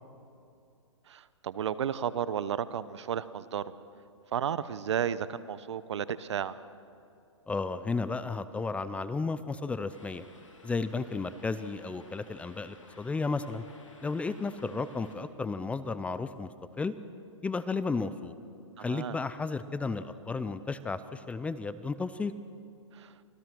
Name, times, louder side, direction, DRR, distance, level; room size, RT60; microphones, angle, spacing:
voice 1, 1.1-3.6 4.3-6.6 18.8-19.2 22.9-23.1, right 8 dB, 65° right, 16 dB, 0.9 m, -33 dB
voice 2, 7.5-10.2 10.6-13.6 14.0-16.5 16.8-16.9 17.4-18.3 18.8-22.3, left 4 dB, 10° left, 14 dB, 0.6 m, -33 dB
sound 1, 9.9-15.2, left 3 dB, 85° left, 3.1 m, -55 dB
25.5 x 17.0 x 6.2 m, 2.5 s
hypercardioid pair, 125°, 16 cm